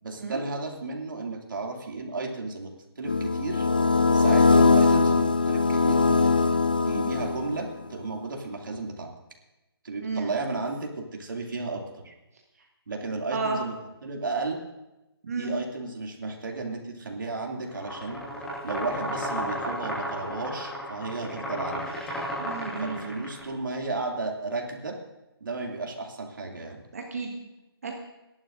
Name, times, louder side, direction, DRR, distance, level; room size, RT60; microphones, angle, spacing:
voice 1, 0.0-2.7 3.0-3.7 4.1-6.5 6.9-9.1 9.8-12.1 12.9-13.7 14.0-14.6 15.3-18.2 18.6-21.9 22.8-24.9 25.4-26.8, right 3 dB, 55° right, 1 dB, 2.5 m, -33 dB
sound 1, 3.0-7.7, left 4 dB, 20° left, 0.3 m, -21 dB
voice 2, 10.0-10.3 13.3-13.6 15.2-15.5 22.4-23.2 26.9-27.5 27.8-27.9, right 4 dB, 40° right, 1 dB, 1.4 m, -32 dB
sound 2, 17.7-23.4, equal, 5° left, 1.4 m, -33 dB
27.5 x 11.0 x 2.6 m, 0.98 s
hypercardioid pair, 175°, 13 cm